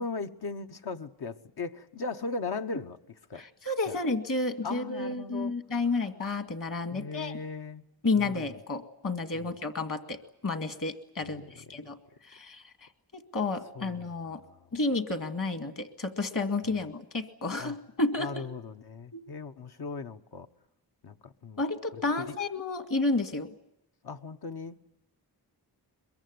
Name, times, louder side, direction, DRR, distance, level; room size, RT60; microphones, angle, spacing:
voice 1, 0.0-3.0 3.3-3.4 3.9-4.0 4.6-5.5 6.9-7.8 8.2-8.5 9.3-9.5 11.2-11.6 13.8-14.0 14.5-14.7 17.6-17.8 18.2-20.5 21.0-21.6 21.9-22.4 24.0-24.8, left 4 dB, 75° left, 5 dB, 1.1 m, -38 dB
voice 2, 3.4-7.3 8.0-11.4 11.7-12.0 12.3-12.6 13.1-14.4 14.7-18.5 19.1-19.2 21.6-23.5, left 3 dB, 55° left, 8 dB, 2.1 m, -31 dB
22.5 x 22.5 x 9.4 m, 0.83 s
wide cardioid pair, 90°, 39 cm